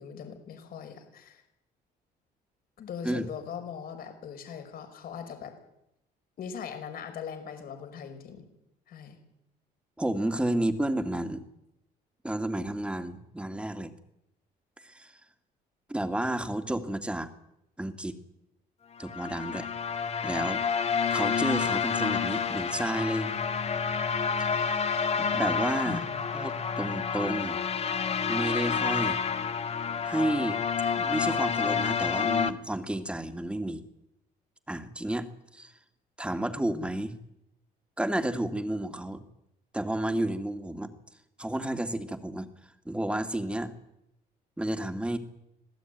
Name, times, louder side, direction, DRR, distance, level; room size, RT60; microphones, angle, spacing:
voice 1, 0.0-1.4 2.8-5.5 6.4-8.5 8.9-9.2 25.9-26.2, left 7 dB, 60° left, 7 dB, 5.4 m, -40 dB
voice 2, 10.0-11.4 12.2-13.9 14.8-15.1 15.9-17.3 17.8-18.2 19.0-19.7 20.2-20.6 21.1-23.3 24.4-24.7 25.2-26.0 26.3-27.6 28.3-29.2 30.0-30.6 31.0-33.8 34.7-35.7 36.2-37.2 38.0-39.2 39.7-40.9 41.4-42.5 42.9-43.7 44.6-45.2, right 1 dB, 5° right, 8 dB, 2.4 m, -31 dB
sound 1, 19.0-32.5, left 6 dB, 40° left, 1.7 m, -29 dB
26.5 x 17.5 x 9.3 m, 0.84 s
cardioid pair, 110°, 17 cm